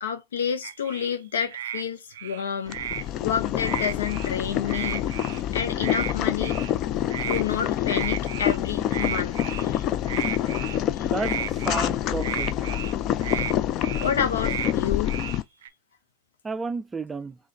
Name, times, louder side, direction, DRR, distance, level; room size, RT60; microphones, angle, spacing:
voice 1, 0.0-2.8 3.2-5.0 5.5-6.5 7.3-9.8 11.0-11.1 13.3-13.5 14.0-15.1, left 8 dB, 80° left, 0.9 m, -29 dB
sound 1, 0.6-1.1 1.5-1.8 2.1-3.0 3.6-4.3 4.7-5.4 5.8-6.1 6.4-6.7 7.1-7.4 7.8-8.6 8.9-9.7 10.1-10.8 11.2-11.9 12.2-12.9 13.2-13.5 13.8-14.1 14.4-14.7 15.1-15.7, right 10 dB, 75° right, 0.4 m, -33 dB
Boiling, 2.7-15.4, left 11 dB, 45° left, 0.4 m, -27 dB
voice 2, 11.0-12.5 16.4-17.4, right 4 dB, 15° right, 0.4 m, -32 dB
3.8 x 2.5 x 4.5 m
hypercardioid pair, 95°, 0 cm